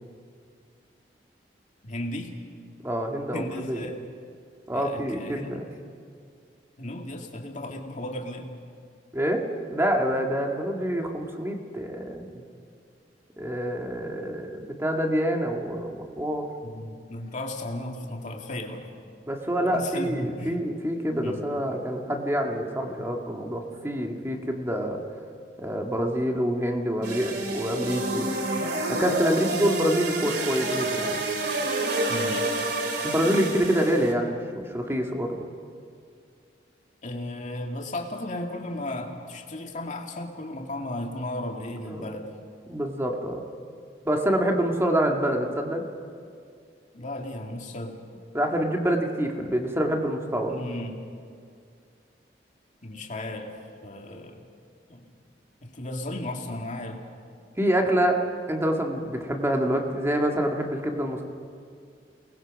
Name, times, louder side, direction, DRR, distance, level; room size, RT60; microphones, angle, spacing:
voice 1, 1.8-2.3 3.3-4.0 4.7-5.6 5.9-6.0 6.8-8.5 12.3-12.4 16.6-18.9 19.6-20.6 21.2-21.5 32.1-32.5 37.0-42.3 46.9-48.0 50.5-51.0 52.8-53.6 53.8-54.5 54.9-55.1 55.6-57.0, left 1 dB, 45° left, 1 dB, 2.3 m, -35 dB
voice 2, 2.8-3.9 4.7-5.7 9.1-12.3 13.4-16.5 19.3-25.0 25.6-28.3 28.9-31.2 33.0-35.5 41.9-42.1 42.7-43.4 44.0-45.8 48.3-50.6 57.6-58.2 58.5-61.2, equal, 15° right, 2 dB, 2.0 m, -26 dB
sound 1, 27.0-34.1, right 2 dB, 70° right, 2.5 m, -29 dB
29.5 x 20.0 x 5.4 m, 2.3 s
head